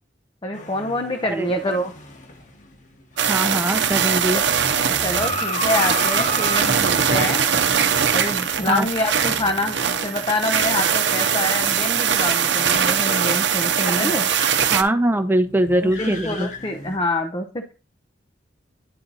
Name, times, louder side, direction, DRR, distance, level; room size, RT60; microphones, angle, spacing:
voice 1, 0.4-1.9 5.0-7.4 8.1-9.8 10.0-14.3 15.8-17.7, left 1 dB, 25° left, 5 dB, 0.6 m, -26 dB
sound 1, 0.5-10.5 10.8-10.9 11.5-17.0, left 1 dB, 40° left, 1.3 m, -35 dB
voice 2, 3.2-4.4 8.7-8.9 13.9-14.3 14.7-16.5, right 1 dB, 10° right, 7 dB, 0.7 m, -22 dB
sound 2, 3.2-14.8, right 7 dB, 70° right, 0.8 m, -21 dB
10.0 x 4.2 x 3.9 m, 0.33 s
head